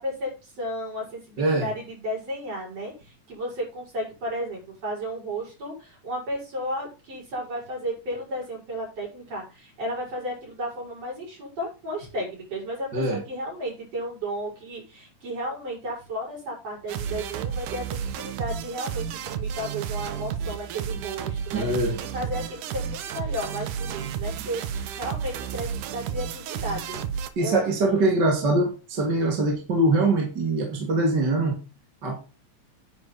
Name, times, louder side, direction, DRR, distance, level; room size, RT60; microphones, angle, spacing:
voice 1, 0.0-21.7 22.0-27.0 27.4-28.1, equal, 50° right, -2 dB, 7.7 m, -33 dB
voice 2, 1.4-1.7 12.9-13.2 21.5-21.9 27.4-31.6 32.0-32.2, right 2 dB, 35° right, 1 dB, 2.4 m, -23 dB
sound 1, 16.9-27.3, right 7 dB, 85° right, 2.6 m, -32 dB
10.5 x 9.5 x 4.1 m, 0.32 s
omnidirectional pair, 3.6 m